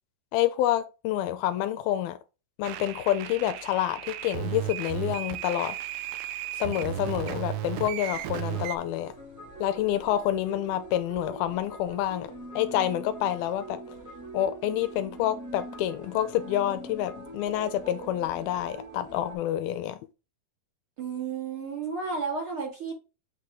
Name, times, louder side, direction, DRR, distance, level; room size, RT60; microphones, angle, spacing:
voice 1, 0.3-2.2 2.6-5.8 6.6-9.1 9.6-13.8 14.3-20.0, left 12 dB, 80° left, 2.4 m, -28 dB
sound 1, 2.6-8.8, right 11 dB, 80° right, 2.3 m, -34 dB
sound 2, 7.9-19.3, right 2 dB, 15° right, 0.7 m, -43 dB
voice 2, 21.0-23.0, right 5 dB, 40° right, 2.2 m, -32 dB
8.4 x 4.1 x 3.6 m
omnidirectional pair, 4.5 m